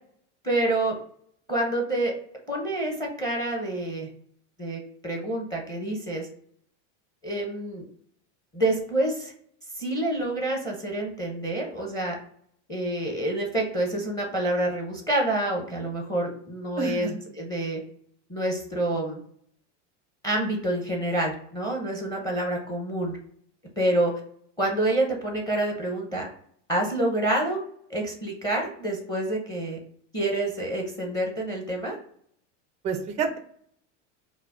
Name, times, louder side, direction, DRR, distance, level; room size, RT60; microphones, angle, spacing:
voice 1, 0.4-1.0 1.5-2.1 2.5-4.1 4.6-6.3 7.2-7.8 8.5-9.3 9.8-12.2 12.7-17.1 17.3-17.8 18.3-19.2 20.2-23.2 23.8-24.1 24.6-26.3 26.7-27.6 27.9-29.8 30.1-32.0, right 1 dB, 10° left, 0 dB, 0.7 m, -27 dB
voice 2, 16.8-17.1 32.8-33.4, right 5 dB, 20° right, 7 dB, 0.3 m, -28 dB
4.8 x 2.1 x 4.8 m, 0.62 s
supercardioid pair, 155°, 37 cm